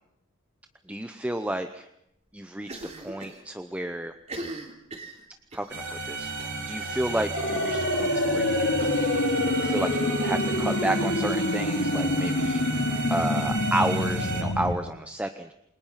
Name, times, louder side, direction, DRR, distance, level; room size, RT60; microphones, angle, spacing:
voice 1, 0.9-1.9 2.3-2.7 3.0-4.1 5.5-6.3 6.7-8.9 9.6-12.6 13.1-15.5, right 1 dB, 5° right, 7 dB, 0.8 m, -31 dB
Cough, 2.6-3.4 3.7-3.8 4.2-5.7 6.4-6.7 7.0-7.1 7.4-7.5 8.8-10.0, right 2 dB, 35° right, 3.4 m, -40 dB
sound 1, 5.7-14.4, right 2 dB, 55° right, 4.8 m, -33 dB
sound 2, 7.3-14.7, left 1 dB, 70° left, 2.8 m, -26 dB
29.0 x 21.5 x 5.8 m, 0.78 s
head